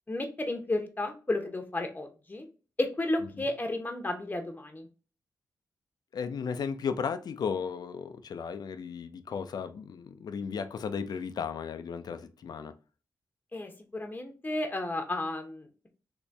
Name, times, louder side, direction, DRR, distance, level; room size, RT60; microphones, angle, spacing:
voice 1, 0.1-2.5 2.8-4.9 13.5-15.9, left 2 dB, 25° left, 0.8 m, -33 dB
voice 2, 6.1-12.7, left 6 dB, 70° left, 0.4 m, -35 dB
2.9 x 2.6 x 3.4 m
cardioid pair, 50°, 7 cm